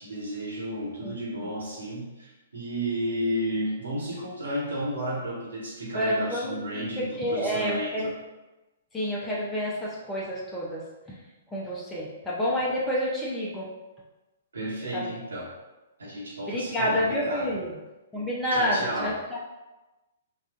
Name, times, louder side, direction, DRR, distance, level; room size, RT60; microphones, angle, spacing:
voice 1, 0.0-8.1 14.5-15.5 16.0-17.5 18.5-19.1, equal, 75° right, -7 dB, 1.0 m, -32 dB
voice 2, 5.9-8.1 8.9-11.2 11.5-13.7 14.9-15.1 16.4-17.7 18.1-19.4, equal, 10° left, -6 dB, 0.6 m, -29 dB
4.1 x 2.4 x 2.5 m, 1.1 s
figure-of-eight pair, 115°, 0 cm